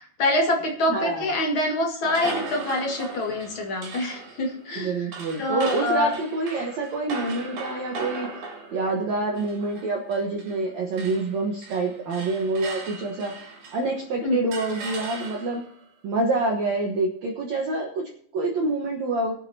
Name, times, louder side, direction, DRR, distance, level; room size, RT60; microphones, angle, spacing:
voice 1, 0.0-5.0 5.4-6.1 14.2-14.5, left 1 dB, 45° left, 0 dB, 1.7 m, -25 dB
voice 2, 0.9-1.3 4.8-8.4 8.7-15.6 16.0-19.3, right 2 dB, 90° right, 0 dB, 1.5 m, -27 dB
sound 1, 2.0-10.7 10.9-14.0 14.5-15.7, right 3 dB, 50° right, 4.9 m, -38 dB
21.0 x 9.2 x 2.8 m, 0.64 s
omnidirectional pair, 5.2 m